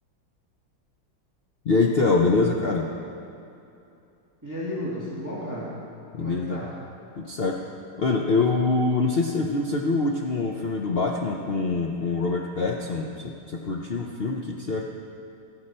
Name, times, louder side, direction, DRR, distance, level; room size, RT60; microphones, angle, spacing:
voice 1, 1.6-2.9 6.1-6.6 7.2-7.7 8.0-14.8, left 3 dB, 85° left, -1 dB, 0.5 m, -24 dB
voice 2, 4.4-5.7 6.2-6.7, equal, 10° right, -8 dB, 2.1 m, -33 dB
13.0 x 12.0 x 4.3 m, 2.7 s
omnidirectional pair, 2.1 m